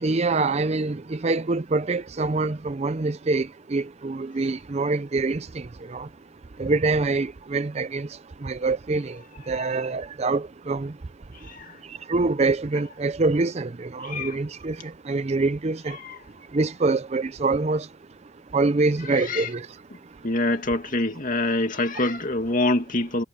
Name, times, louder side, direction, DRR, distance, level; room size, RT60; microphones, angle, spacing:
voice 1, 0.0-6.1 6.6-8.1 8.4-9.2 9.5-10.9 12.1-16.0 16.5-17.9 18.5-19.7, right 3 dB, 30° right, 0.5 m, -25 dB
voice 2, 14.0-14.3 16.0-16.2 19.3-19.5 20.2-23.2, left 2 dB, 40° left, 2.5 m, -25 dB
head